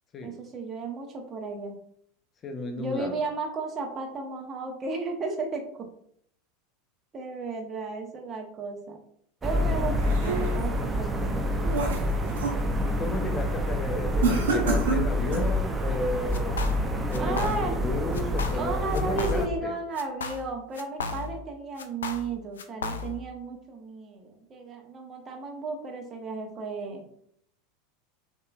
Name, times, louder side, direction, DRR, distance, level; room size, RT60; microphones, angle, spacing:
voice 1, 0.2-1.8 2.8-5.9 7.1-9.0 9.4-11.5 17.2-17.8 18.6-27.0, right 3 dB, 30° right, 2 dB, 1.1 m, -34 dB
voice 2, 2.4-3.2 12.8-16.6 17.1-19.7, left 2 dB, 30° left, 5 dB, 0.7 m, -33 dB
sound 1, 9.4-19.5, left 1 dB, 10° right, 0.7 m, -27 dB
sound 2, 9.7-10.8 11.3-12.6 13.0-13.3 14.2-15.6, right 4 dB, 75° right, 1.3 m, -29 dB
sound 3, 16.3-16.8 17.1-17.8 18.1-18.7 18.9-19.7 20.0-21.5 21.8-23.3, left 4 dB, 75° left, 0.5 m, -35 dB
6.5 x 2.9 x 2.4 m, 0.66 s
hypercardioid pair, 85°, 0 cm